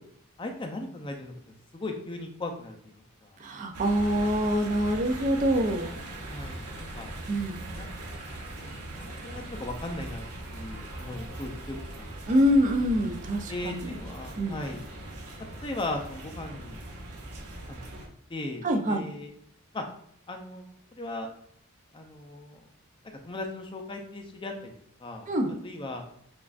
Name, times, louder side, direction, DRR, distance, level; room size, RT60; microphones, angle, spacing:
voice 1, 0.4-1.3 1.7-2.9 3.2-3.3 6.3-7.1 7.7-7.9 8.6-10.2 10.5-12.2 13.5-14.8 15.6-16.8 17.7-17.8 18.3-19.3 19.7-19.8 20.3-20.6 21.0-21.3 21.9-22.6 23.2-24.7 25.0-25.3 25.6-26.0, left 2 dB, 20° left, 3 dB, 0.5 m, -37 dB
voice 2, 3.4-6.0 7.3-7.6 12.3-13.9 14.4-14.6 18.6-19.0 25.3-25.6, equal, 35° right, 4 dB, 0.4 m, -25 dB
sound 1, 3.7-18.1, right 1 dB, 90° right, 1.0 m, -40 dB
6.9 x 2.5 x 2.4 m, 0.69 s
head